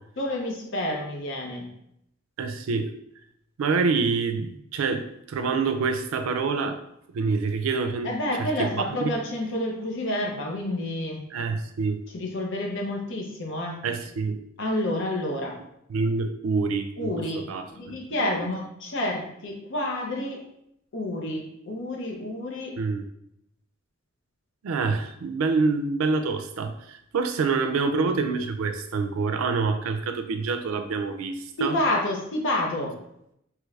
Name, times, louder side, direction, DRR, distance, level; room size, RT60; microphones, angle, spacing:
voice 1, 0.2-1.7 8.0-11.2 12.1-13.8 14.6-15.6 17.0-17.4 17.8-20.4 20.9-22.7 31.6-32.9, left 1 dB, 65° left, 0 dB, 0.7 m, -29 dB
voice 2, 2.4-2.9 3.6-6.8 7.1-8.1 8.4-9.1 11.3-12.0 13.8-14.4 15.9-18.5 22.8-23.1 24.6-31.8, right 4 dB, 90° right, 7 dB, 0.4 m, -27 dB
3.0 x 2.4 x 3.2 m, 0.76 s
head